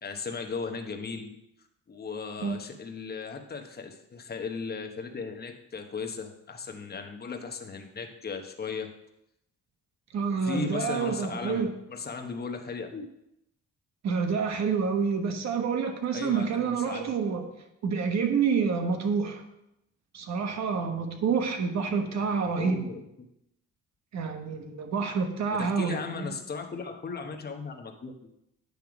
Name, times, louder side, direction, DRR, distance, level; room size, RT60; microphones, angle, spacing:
voice 1, 0.0-1.4 1.9-8.9 10.4-13.1 16.1-17.1 22.5-23.3 25.5-28.3, left 5 dB, 30° left, 5 dB, 1.0 m, -37 dB
voice 2, 10.1-11.7 14.0-17.5 17.8-19.4 20.1-22.8 24.1-26.4, right 5 dB, 65° right, 5 dB, 1.2 m, -28 dB
9.4 x 3.4 x 5.9 m, 0.83 s
cardioid pair, 90°, 30 cm